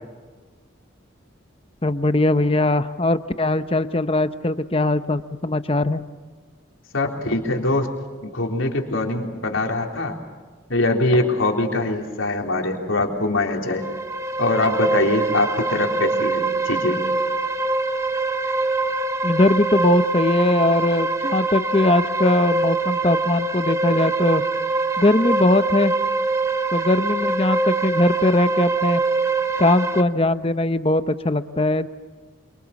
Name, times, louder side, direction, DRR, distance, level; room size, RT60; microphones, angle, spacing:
voice 1, 1.8-6.0 19.2-24.4 25.0-25.9 26.7-29.0 29.6-31.9, left 2 dB, 30° left, 11 dB, 0.8 m, -20 dB
voice 2, 6.9-7.9 8.2-10.2 10.7-13.8 14.4-17.0, left 2 dB, 85° left, 1 dB, 3.9 m, -23 dB
sound 1, 13.7-30.0, right 3 dB, 15° right, 0.9 m, -24 dB
27.5 x 25.5 x 7.2 m, 1.4 s
head